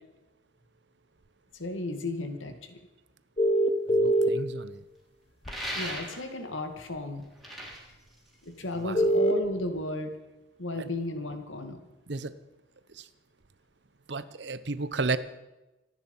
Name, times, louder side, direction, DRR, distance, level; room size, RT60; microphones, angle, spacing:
voice 1, 1.6-2.8 5.8-7.3 8.4-10.2 10.6-11.8, left 2 dB, 90° left, 7 dB, 2.2 m, -34 dB
sound 1, 3.4-4.3 5.5-5.6 8.9-9.3, right 1 dB, 30° left, 1.0 m, -22 dB
voice 2, 3.9-4.8 8.8-9.0 10.8-10.9 12.1-12.3 14.1-15.2, right 3 dB, 60° right, 14 dB, 0.9 m, -32 dB
sound 2, 5.4-6.4 7.2-8.9, equal, ahead, 3.6 m, -38 dB
26.0 x 9.9 x 5.5 m, 1.0 s
head